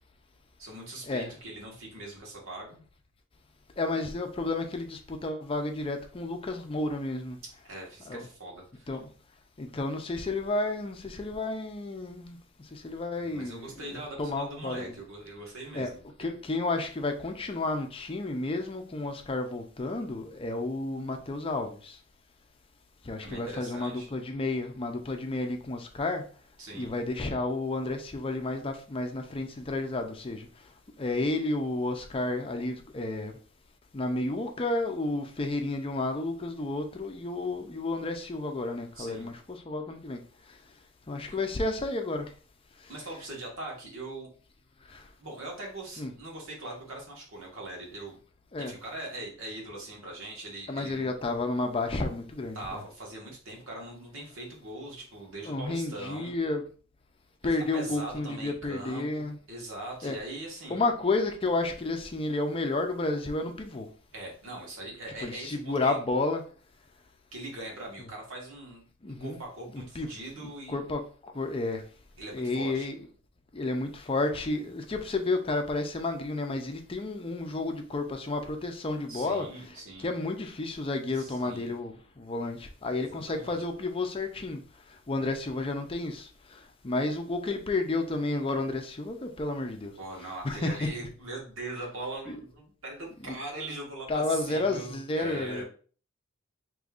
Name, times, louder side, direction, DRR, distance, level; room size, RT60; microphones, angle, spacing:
voice 1, 0.6-2.8 7.6-8.9 13.2-16.0 23.2-24.1 26.6-26.9 38.9-39.3 42.9-44.3 45.2-48.2 48.6-51.1 52.5-56.4 57.4-60.8 64.1-66.0 67.3-70.8 72.2-72.9 79.1-80.1 81.1-81.8 83.0-83.6 90.0-95.6, right 2 dB, 80° right, 1.6 m, -41 dB
voice 2, 3.8-7.4 8.1-8.3 8.9-9.1 9.6-12.4 12.7-14.9 15.7-15.9 16.2-22.0 23.0-26.2 26.7-30.5 31.0-33.4 33.9-40.2 40.5-40.6 41.1-42.3 42.8-42.9 44.9-45.1 46.0-46.1 48.5-48.7 50.7-52.8 55.4-56.6 57.4-59.4 60.0-60.2 60.7-63.9 65.2-66.4 69.0-69.4 69.7-70.1 70.4-71.8 72.3-73.0 73.5-84.6 84.9-89.9 90.4-90.9 92.3-92.4 93.2-93.3 94.1-95.6, left 2 dB, 25° left, 0.5 m, -31 dB
5.1 x 3.1 x 2.4 m
head